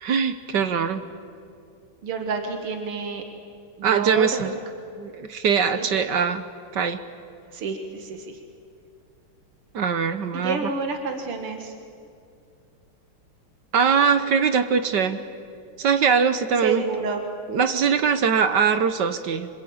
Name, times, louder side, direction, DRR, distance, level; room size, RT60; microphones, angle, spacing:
voice 1, 0.0-1.0 3.8-4.6 5.0-6.4 6.7-7.0 9.7-10.7 13.7-15.2 15.8-16.8 17.5-19.5, right 6 dB, 60° right, 10 dB, 1.5 m, -22 dB
voice 2, 2.0-3.2 3.8-4.4 5.7-5.9 7.5-8.4 10.3-11.7 16.6-17.2, right 5 dB, 90° right, 4 dB, 2.7 m, -29 dB
26.5 x 26.0 x 8.7 m, 2.4 s
omnidirectional pair, 2.4 m